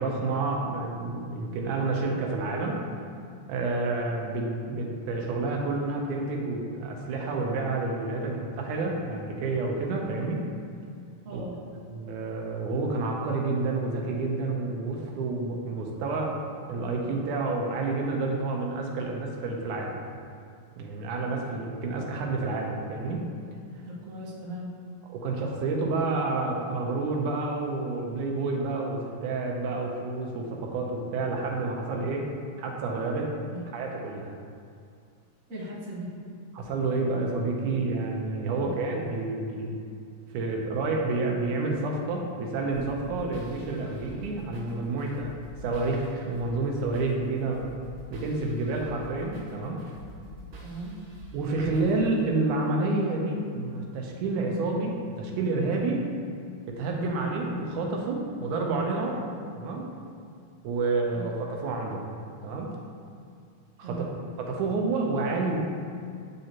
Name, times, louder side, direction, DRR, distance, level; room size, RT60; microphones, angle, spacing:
voice 1, 0.0-2.8 3.5-10.4 11.3-11.4 11.9-16.4 16.7-20.0 20.8-23.3 25.1-32.3 32.6-33.3 33.7-34.3 36.5-39.7 40.3-45.3 45.6-47.7 48.1-49.8 51.3-56.0 56.7-59.2 59.5-59.9 60.6-62.1 62.4-62.7 63.8-64.0 64.4-65.7, right 3 dB, 85° right, 0 dB, 2.4 m, -29 dB
voice 2, 11.2-11.6 23.8-24.7 33.4-33.7 35.5-36.1 38.5-38.7 50.6-51.0 61.1-61.3 63.8-64.1, right 1 dB, 40° right, -6 dB, 1.2 m, -38 dB
sound 1, 42.7-52.3, right 1 dB, 60° right, 1.6 m, -46 dB
8.8 x 6.5 x 2.9 m, 2.4 s
omnidirectional pair, 3.4 m